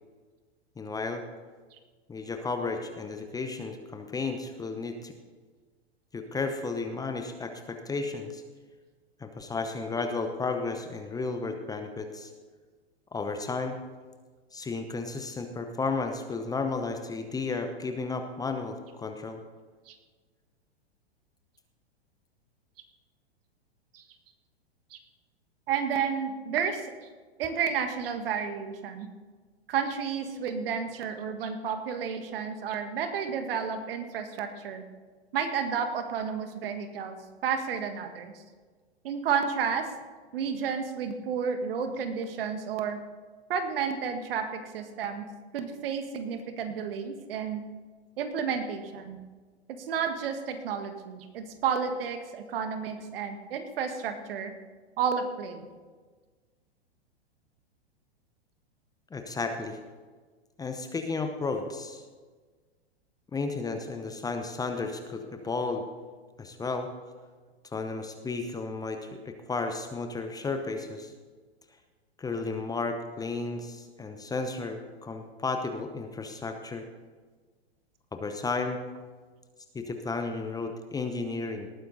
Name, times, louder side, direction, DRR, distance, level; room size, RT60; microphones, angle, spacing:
voice 1, 0.8-1.2 2.1-5.1 6.1-8.4 9.2-12.3 13.1-13.7 14.5-19.4 59.1-59.8 60.6-62.0 63.3-65.8 66.4-66.9 67.7-71.1 72.2-76.8 78.1-78.8 79.7-81.7, left 3 dB, 10° left, 6 dB, 0.9 m, -33 dB
voice 2, 25.7-26.9 27.4-29.1 29.7-34.8 35.3-37.2 37.4-38.4 39.0-39.9 40.3-43.0 43.5-45.2 45.5-47.6 48.2-49.2 49.9-54.5 55.0-55.7, right 6 dB, 60° right, 7 dB, 1.7 m, -31 dB
18.5 x 9.4 x 4.1 m, 1.4 s
hypercardioid pair, 110°, 33 cm